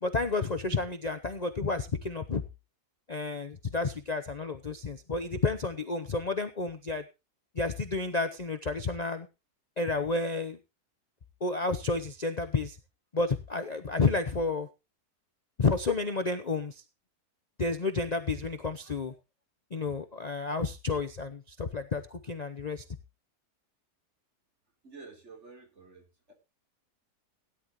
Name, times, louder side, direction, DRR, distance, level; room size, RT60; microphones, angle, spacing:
voice 1, 0.0-2.4 3.1-7.0 7.5-9.3 9.8-10.6 11.4-12.8 13.1-14.7 15.6-16.8 17.6-19.1 19.7-22.8, left 3 dB, 35° left, 8 dB, 0.8 m, -31 dB
voice 2, 24.8-26.3, right 4 dB, 45° right, 2 dB, 3.8 m, -50 dB
17.5 x 10.5 x 3.0 m, 0.28 s
omnidirectional pair, 1.7 m